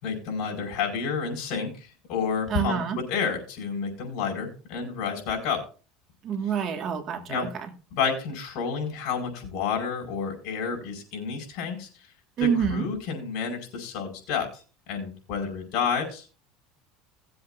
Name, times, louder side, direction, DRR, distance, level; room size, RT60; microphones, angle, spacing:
voice 1, 0.0-5.6 7.3-7.5 7.9-11.9 12.4-14.5 14.9-16.3, left 6 dB, 60° left, 3 dB, 5.0 m, -30 dB
voice 2, 2.5-3.0 6.2-7.7 12.4-12.9, right 7 dB, 40° right, 7 dB, 1.7 m, -27 dB
18.5 x 7.9 x 2.5 m, 0.35 s
supercardioid pair, 135°, 0 cm